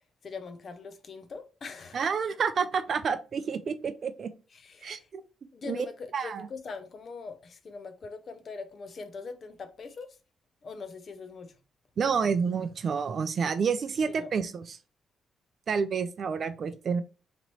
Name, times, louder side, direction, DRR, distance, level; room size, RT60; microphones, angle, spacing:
voice 1, 0.2-2.1 4.5-5.1 5.5-10.2 10.6-11.6 14.1-14.3, left 4 dB, 40° left, 0.5 m, -42 dB
voice 2, 1.9-4.3 4.8-5.2 5.6-5.8 6.1-6.5 12.0-14.8 15.7-17.0, right 6 dB, 40° right, 0.4 m, -29 dB
4.1 x 3.0 x 3.0 m
cardioid pair, 160°, 0 cm